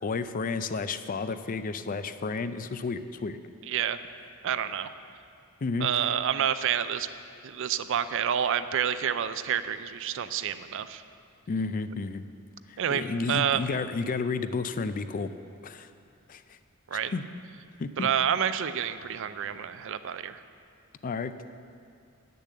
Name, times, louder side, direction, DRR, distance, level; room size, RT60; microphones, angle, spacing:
voice 1, 0.0-3.4 5.6-6.0 11.5-12.2 12.7-15.3 15.6-15.9 16.3-16.4 16.9-17.3 17.8-18.1 21.0-21.3, left 4 dB, 40° left, 12 dB, 0.4 m, -31 dB
voice 2, 3.7-4.0 4.4-4.9 5.8-7.1 7.4-11.0 12.8-13.0 13.3-13.6 16.9-17.1 18.0-20.4, right 8 dB, 65° right, 12 dB, 0.4 m, -28 dB
9.9 x 6.8 x 7.5 m, 2.4 s
head